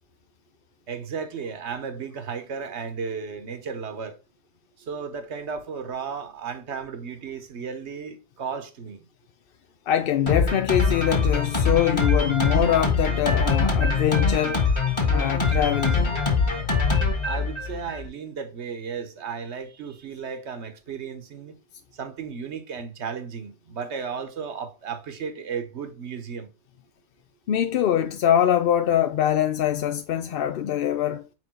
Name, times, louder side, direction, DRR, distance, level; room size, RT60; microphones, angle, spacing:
voice 1, 0.9-4.2 4.8-9.1 17.2-21.5 21.9-26.5, right 6 dB, 70° right, 1.2 m, -34 dB
voice 2, 9.9-14.6 15.1-16.2 27.5-31.2, left 10 dB, 60° left, 0.6 m, -23 dB
Drum kit, 10.3-18.1, left 4 dB, 25° left, 1.5 m, -23 dB
5.1 x 4.5 x 4.3 m
omnidirectional pair, 1.2 m